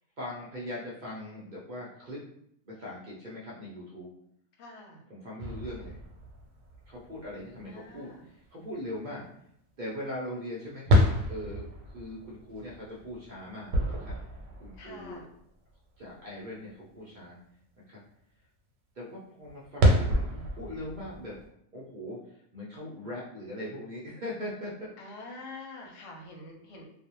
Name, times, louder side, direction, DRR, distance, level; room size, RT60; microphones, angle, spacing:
voice 1, 0.2-2.2 2.6-4.1 5.1-6.0 6.9-9.3 9.8-11.0 11.3-14.1 14.6-15.3 16.0-17.4 17.9-18.0 18.9-21.4 21.7-22.2 22.5-25.2, left 1 dB, 50° right, -5 dB, 0.6 m, -40 dB
voice 2, 4.6-5.0 7.7-8.2 14.8-15.2 25.0-26.9, left 2 dB, 85° left, 0 dB, 1.0 m, -45 dB
sound 1, 5.4-7.9 8.3-8.4 10.9-15.2 15.7-15.8 19.5-21.5, equal, 90° right, 1.0 m, -28 dB
2.4 x 2.0 x 2.8 m, 0.71 s
omnidirectional pair, 1.3 m